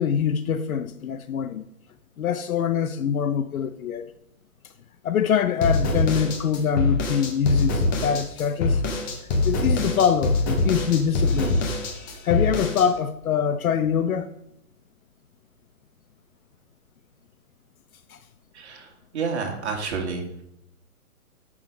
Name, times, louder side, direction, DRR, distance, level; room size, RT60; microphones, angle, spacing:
voice 1, 0.0-1.6 2.2-4.1 5.0-8.8 9.2-11.6 12.2-14.3 18.1-18.2, left 8 dB, 70° left, 0.7 m, -24 dB
sound 1, 5.6-12.9, left 2 dB, 15° left, 0.7 m, -24 dB
voice 2, 18.5-18.9 19.1-20.4, right 5 dB, 50° right, 2.4 m, -29 dB
7.6 x 6.1 x 5.1 m
hypercardioid pair, 155°, 44 cm